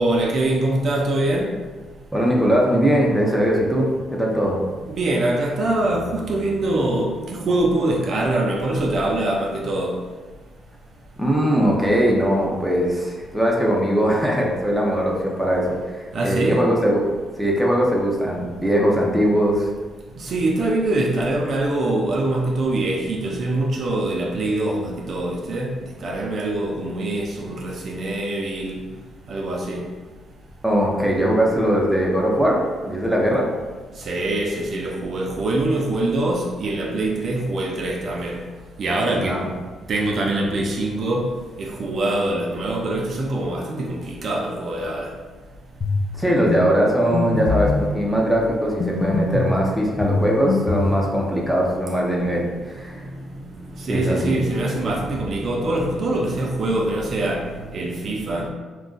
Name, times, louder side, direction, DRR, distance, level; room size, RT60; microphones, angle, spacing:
voice 1, 0.0-1.5 4.9-10.1 16.1-16.7 20.2-28.8 29.3-29.9 34.0-38.4 38.8-39.4 39.9-41.3 41.6-45.1 53.8-58.5, right 2 dB, 55° right, 0.4 m, -24 dB
voice 2, 2.1-4.6 11.2-17.0 17.4-19.7 30.6-33.5 39.2-39.5 46.1-53.0 53.9-54.4, equal, ahead, 0.7 m, -20 dB
sound 1, 45.8-46.1 46.5-46.6 47.1-47.9 48.8-49.6 50.0-51.0, left 3 dB, 45° left, 0.3 m, -22 dB
2.5 x 2.2 x 3.7 m
cardioid pair, 90°, 0 cm